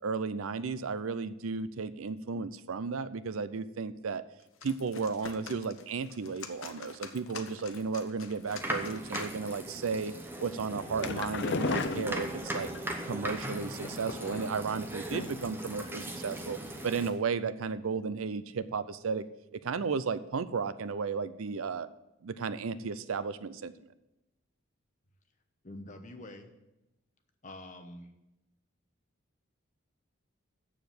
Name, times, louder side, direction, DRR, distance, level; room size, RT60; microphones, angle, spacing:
voice 1, 0.0-4.2 4.6-10.1 10.4-12.7 13.0-19.2 19.6-21.9 22.2-23.7, right 5 dB, 80° right, 14 dB, 0.5 m, -34 dB
sound 1, 4.4-9.7, left 5 dB, 75° left, 0.9 m, -47 dB
sound 2, 8.5-17.1, right 1 dB, 10° right, 0.9 m, -39 dB
sound 3, 10.7-12.8 13.8-14.7 15.1-15.5 15.8-15.9 16.3-16.4, left 3 dB, 55° left, 0.5 m, -35 dB
voice 2, 25.6-26.5 27.4-28.1, left 1 dB, 35° left, 6 dB, 1.0 m, -46 dB
7.3 x 6.8 x 7.9 m, 0.93 s
head